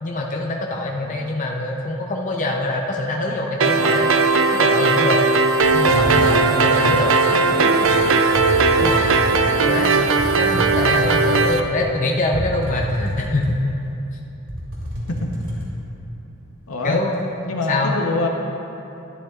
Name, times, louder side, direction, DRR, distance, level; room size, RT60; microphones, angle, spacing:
voice 1, 0.0-4.1 4.5-5.2 5.7-7.2 8.8-9.1 9.6-13.7 16.8-17.4 17.7-18.0, left 2 dB, 35° left, 0 dB, 0.6 m, -24 dB
sound 1, 3.6-11.6, right 4 dB, 65° right, 0.5 m, -17 dB
sound 2, 5.6-7.1 7.8-8.0 8.3-9.5 10.2-11.8 12.3-13.8 14.1-14.2 14.5-15.7, equal, 90° right, 2.0 m, -28 dB
voice 2, 5.8-6.9 7.3-8.2 8.8-9.0 9.3-9.7 15.1-15.3 16.7-17.0 17.4-18.3, left 2 dB, 85° left, 1 dB, 0.9 m, -28 dB
12.0 x 10.0 x 2.4 m, 2.9 s
head